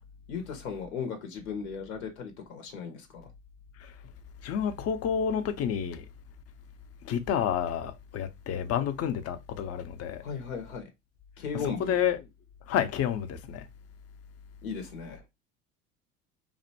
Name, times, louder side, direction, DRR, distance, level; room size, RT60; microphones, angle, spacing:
voice 1, 0.3-3.3 10.2-10.9 11.4-11.9 14.6-15.2, left 6 dB, 85° left, 0.8 m, -36 dB
voice 2, 4.4-6.1 7.0-10.2 11.5-12.2 12.7-13.7, left 8 dB, 35° left, 0.5 m, -29 dB
2.6 x 2.1 x 2.7 m
hypercardioid pair, 80°, 41 cm